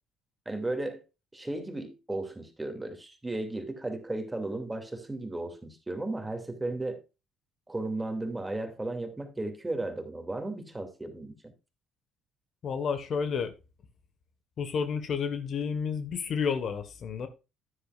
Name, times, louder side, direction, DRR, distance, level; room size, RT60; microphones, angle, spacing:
voice 1, 0.5-1.0 1.3-7.0 7.7-11.4, right 2 dB, 15° right, 2.5 m, -35 dB
voice 2, 12.6-13.5 14.6-17.3, left 6 dB, 55° left, 1.4 m, -31 dB
10.0 x 9.8 x 2.4 m
supercardioid pair, 70°, 0 cm